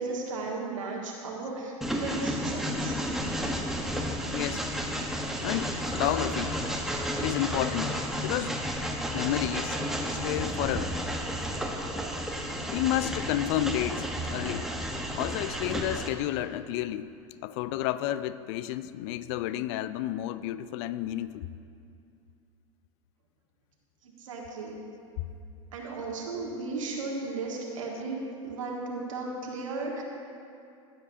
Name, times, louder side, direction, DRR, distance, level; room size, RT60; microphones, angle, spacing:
voice 1, 0.0-3.0 24.0-24.8 25.7-30.0, right 3 dB, 80° right, -2 dB, 1.5 m, -35 dB
Train, 1.8-16.1, equal, ahead, 1.0 m, -32 dB
voice 2, 4.2-4.7 5.4-6.6 7.2-8.6 9.1-9.8 10.1-11.0 12.7-14.7 15.2-17.1 17.4-21.5, left 13 dB, 60° left, 14 dB, 0.4 m, -31 dB
15.5 x 7.6 x 2.7 m, 2.5 s
hypercardioid pair, 85°, 17 cm